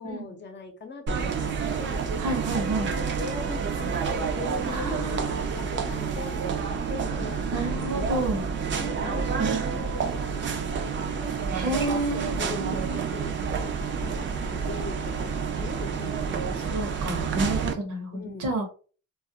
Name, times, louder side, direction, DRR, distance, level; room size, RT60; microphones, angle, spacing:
voice 1, 0.0-2.1 3.1-7.6 8.0-8.3 8.8-11.4 12.4-16.6 18.1-18.5, left 3 dB, 35° left, 5 dB, 0.6 m, -40 dB
sound 1, 1.1-17.7, right 6 dB, 40° right, 0.4 m, -29 dB
voice 2, 2.2-2.9 4.7-5.4 7.5-8.4 11.5-13.1 16.6-18.6, right 1 dB, 80° right, 3 dB, 1.0 m, -30 dB
2.4 x 2.0 x 2.7 m, 0.38 s
cardioid pair, 90°, 30 cm